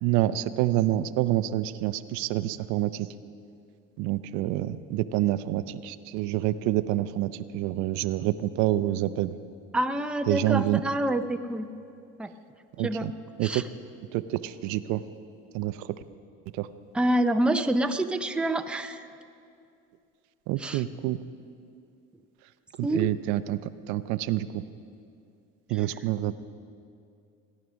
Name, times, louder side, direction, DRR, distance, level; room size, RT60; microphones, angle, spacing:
voice 1, 0.0-3.1 4.0-9.4 10.3-10.8 12.8-13.1 13.4-13.6 14.1-15.0 15.5-15.9 16.5-16.7 20.5-21.2 22.8-24.6 25.7-26.3, right 14 dB, 80° right, 13 dB, 0.6 m, -27 dB
voice 2, 9.7-11.7 12.2-12.3 12.8-13.1 13.4-13.6 16.9-19.1 20.6-20.8 22.8-23.1, right 1 dB, 5° right, 7 dB, 0.5 m, -27 dB
17.5 x 11.0 x 6.2 m, 2.5 s
cardioid pair, 120°, 29 cm